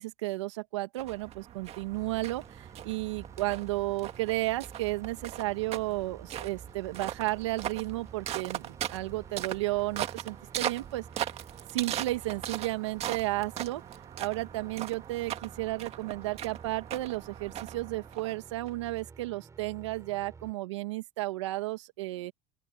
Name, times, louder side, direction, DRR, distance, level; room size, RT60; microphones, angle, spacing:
voice 1, 0.0-11.0 11.7-13.8 14.2-22.3, right 19 dB, 90° right, 2.4 m, -33 dB
sound 1, 1.0-18.7, right 11 dB, 45° right, 1.9 m, -39 dB
sound 2, 1.9-20.5, right 4 dB, 20° right, 6.6 m, -51 dB
open air
supercardioid pair, 105°, 15 cm